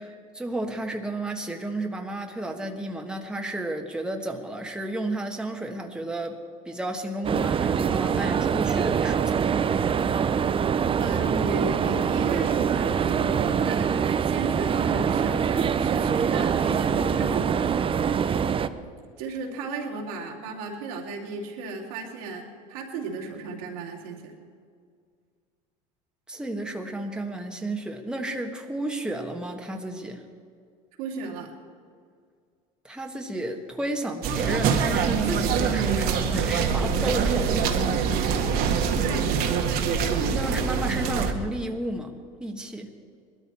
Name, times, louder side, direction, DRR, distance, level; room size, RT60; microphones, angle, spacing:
voice 1, 0.0-6.4 6.6-9.6 26.3-30.2 32.8-38.0 40.3-42.1 42.4-42.9, right 1 dB, 5° right, 2 dB, 1.4 m, -32 dB
sound 1, 7.2-18.7, right 7 dB, 30° right, 0.7 m, -24 dB
voice 2, 11.0-17.8 19.2-24.3 31.0-31.5 39.0-39.4, right 4 dB, 85° right, -1 dB, 2.9 m, -35 dB
sound 2, 34.2-41.3, right 6 dB, 60° right, 1.6 m, -24 dB
20.0 x 13.0 x 4.3 m, 2.1 s
supercardioid pair, 100°, 18 cm